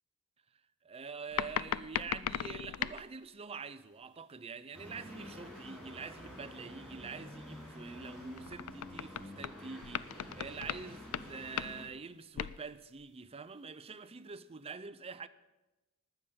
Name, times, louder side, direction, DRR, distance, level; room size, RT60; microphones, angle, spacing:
voice 1, 0.8-15.3, right 5 dB, 30° right, 0.5 m, -46 dB
sound 1, 1.3-3.1 8.4-9.6 9.8-10.9 11.1-11.3 11.6-11.9 12.4-12.6 13.0-13.1, left 10 dB, 85° left, 0.4 m, -37 dB
sound 2, 4.7-11.9, equal, 5° left, 3.8 m, -49 dB
19.5 x 7.1 x 5.3 m
head